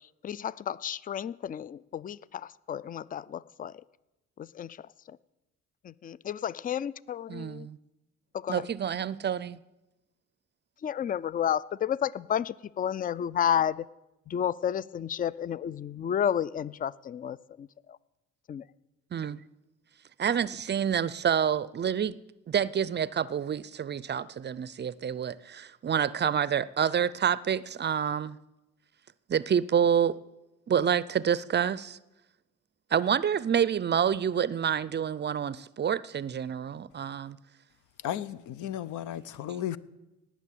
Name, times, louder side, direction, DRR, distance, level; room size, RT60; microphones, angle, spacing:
voice 1, 0.2-3.8 4.4-5.2 5.8-7.7 8.3-8.6 10.8-13.8 14.3-18.0 18.5-18.6, left 9 dB, 30° left, 0.4 m, -31 dB
voice 2, 7.3-7.8 8.5-9.6 19.1-19.4 20.2-22.2 22.5-28.4 29.3-30.2 30.7-32.0 32.9-37.4, right 8 dB, 35° right, 0.5 m, -28 dB
voice 3, 38.0-39.8, left 11 dB, 80° left, 0.7 m, -34 dB
18.5 x 6.2 x 8.4 m
cardioid pair, 90°, 30 cm